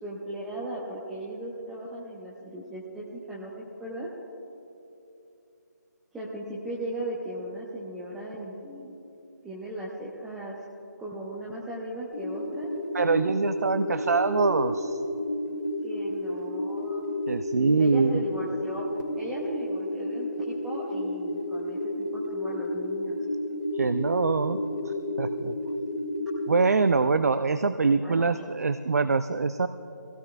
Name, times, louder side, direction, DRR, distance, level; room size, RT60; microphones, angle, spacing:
voice 1, 0.0-3.5 3.8-4.1 6.1-9.0 9.4-10.6 11.0-12.7 15.8-17.0 17.8-18.9 19.2-23.2 28.0-28.5, right 1 dB, 5° right, -5 dB, 0.6 m, -37 dB
sound 1, 12.1-26.7, left 1 dB, 85° left, 2.2 m, -31 dB
voice 2, 12.9-15.0 17.3-18.2 23.7-25.5 26.5-29.7, right 4 dB, 55° right, 11 dB, 0.4 m, -24 dB
21.0 x 16.5 x 2.3 m, 2.9 s
figure-of-eight pair, 155°, 10 cm